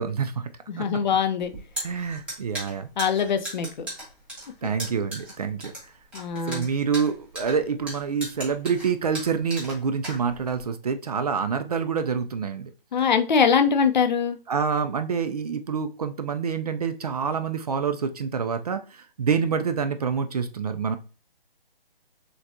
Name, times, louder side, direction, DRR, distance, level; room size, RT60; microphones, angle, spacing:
voice 1, 0.0-0.5 0.8-0.9 1.8-2.9 4.6-5.7 6.3-12.7 14.5-21.0, right 6 dB, 40° right, 9 dB, 0.4 m, -27 dB
voice 2, 0.7-1.5 3.0-3.7 6.1-6.6 12.9-14.4, left 6 dB, 50° left, 8 dB, 0.6 m, -22 dB
sound 1, 1.4-10.6, right 1 dB, 5° right, 0.7 m, -37 dB
6.3 x 2.3 x 2.7 m, 0.36 s
hypercardioid pair, 150°, 29 cm